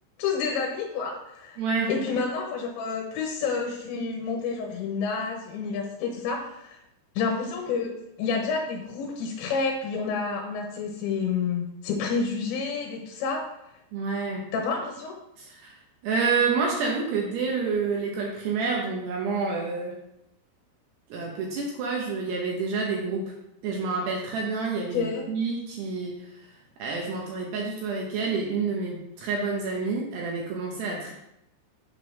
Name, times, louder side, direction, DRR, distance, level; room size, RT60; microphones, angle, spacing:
voice 1, 0.2-1.6 1.9-6.8 7.2-7.9 8.2-13.4 14.5-15.1 24.9-25.2, left 5 dB, 75° left, -1 dB, 3.0 m, -29 dB
voice 2, 1.6-1.9 13.9-14.5 15.4-15.8 16.0-20.0 21.1-23.3 23.6-26.3 26.8-31.1, right 4 dB, 75° right, -1 dB, 2.5 m, -28 dB
8.0 x 3.8 x 5.9 m, 0.82 s
omnidirectional pair, 5.9 m